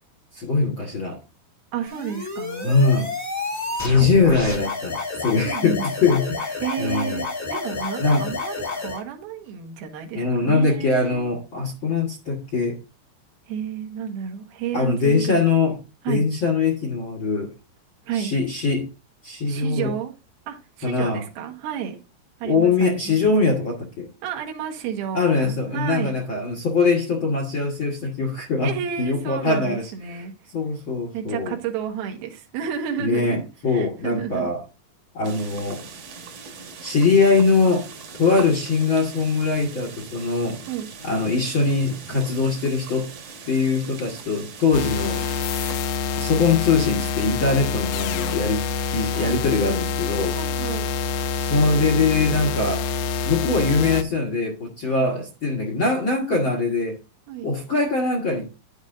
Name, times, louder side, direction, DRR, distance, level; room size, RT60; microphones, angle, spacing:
voice 1, 0.3-1.2 2.6-3.1 3.8-7.2 8.0-8.3 10.1-12.8 14.7-15.8 16.1-17.5 18.1-18.9 19.2-19.9 20.8-21.2 22.4-24.1 25.1-28.7 29.0-29.9 30.5-31.5 33.0-34.6 35.1-35.8 36.8-37.9 38.2-40.6 41.0-43.1 43.4-45.2 46.1-48.6 48.9-50.4 51.4-52.8 53.2-57.0 57.4-58.5, left 4 dB, 60° left, 1.2 m, -22 dB
voice 2, 1.7-2.7 4.0-4.2 5.4-5.9 6.6-11.3 13.5-15.4 16.0-16.2 18.0-18.3 19.5-20.1 20.5-22.0 22.4-23.2 24.2-26.2 28.6-30.3 31.1-34.5 40.7-40.9 44.7-44.9 49.1-49.4 50.4-50.9 54.8-55.1 57.3-57.5, right 9 dB, 75° right, 3.1 m, -31 dB
sound 1, 1.9-9.0, left 3 dB, 25° left, 0.3 m, -30 dB
sound 2, 35.2-45.8, right 5 dB, 55° right, 2.0 m, -40 dB
sound 3, 44.7-54.0, left 5 dB, 80° left, 2.5 m, -26 dB
10.5 x 8.2 x 2.6 m
omnidirectional pair, 4.5 m